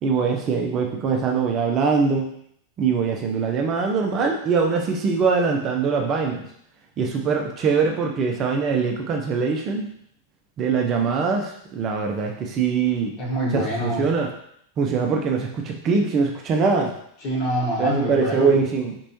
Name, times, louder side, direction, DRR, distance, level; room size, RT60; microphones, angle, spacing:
voice 1, 0.0-2.3 2.8-6.4 7.0-9.9 10.6-13.1 13.5-14.3 14.8-16.9 17.8-19.0, right 5 dB, 30° right, 2 dB, 0.5 m, -22 dB
voice 2, 13.2-14.1 17.2-18.6, equal, 40° left, -4 dB, 1.4 m, -25 dB
4.4 x 3.0 x 2.9 m, 0.69 s
figure-of-eight pair, 90°, 0 cm